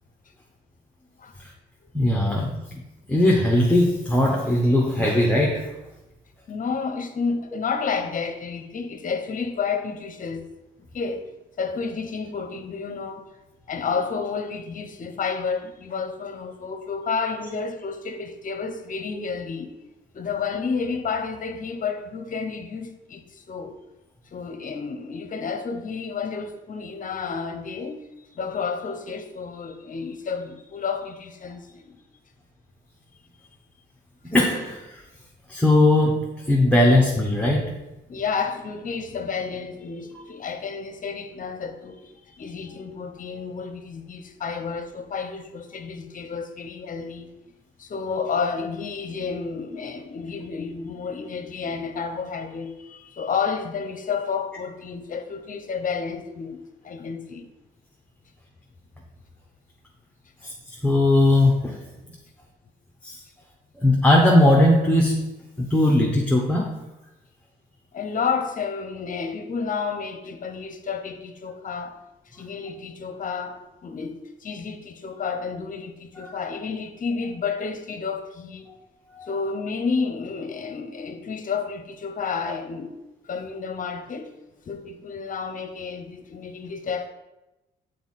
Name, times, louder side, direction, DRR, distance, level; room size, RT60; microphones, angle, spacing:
voice 1, 1.9-2.8 3.1-5.7 34.3-35.0 35.5-37.7 60.4-60.5 60.8-61.8 63.0-63.2 63.8-65.2 65.6-66.7 76.2-76.4 79.1-79.3, left 1 dB, 5° left, 1.0 m, -19 dB
voice 2, 6.5-10.5 10.9-11.3 11.6-13.2 13.7-19.7 20.1-23.7 24.3-28.0 28.3-32.0 38.1-42.0 42.3-47.3 47.8-56.6 56.8-57.5 67.9-72.0 72.3-78.7 79.3-83.0 83.3-84.3 84.7-87.1, left 5 dB, 40° left, 0.8 m, -30 dB
6.9 x 4.2 x 4.2 m
cardioid pair, 90°, 20 cm